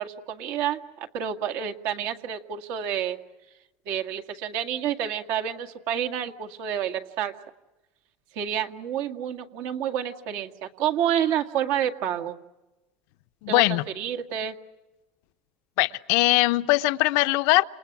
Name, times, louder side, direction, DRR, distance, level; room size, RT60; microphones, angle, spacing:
voice 1, 0.0-3.2 3.9-7.3 8.4-12.4 13.5-14.6, right 9 dB, 65° right, 5 dB, 2.0 m, -29 dB
voice 2, 13.4-13.8 15.8-17.6, left 20 dB, 70° left, 12 dB, 0.9 m, -21 dB
28.5 x 28.0 x 6.1 m, 1.0 s
supercardioid pair, 130°, 5 cm